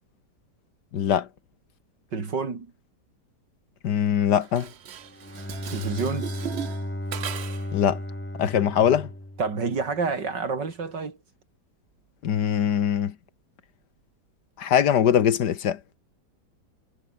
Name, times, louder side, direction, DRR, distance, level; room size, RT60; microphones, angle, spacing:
voice 1, 0.9-1.3 3.8-4.7 7.7-8.0 8.4-9.1 12.2-13.1 14.6-15.8, left 9 dB, 75° left, 1.8 m, -22 dB
voice 2, 2.1-2.7 5.7-6.3 9.4-11.2, right 4 dB, 80° right, 3.8 m, -28 dB
Dishes pots and pans, 4.4-7.8, right 9 dB, 55° right, 0.8 m, -38 dB
Bowed string instrument, 5.0-10.0, left 1 dB, 5° left, 2.6 m, -34 dB
omnidirectional pair, 1.9 m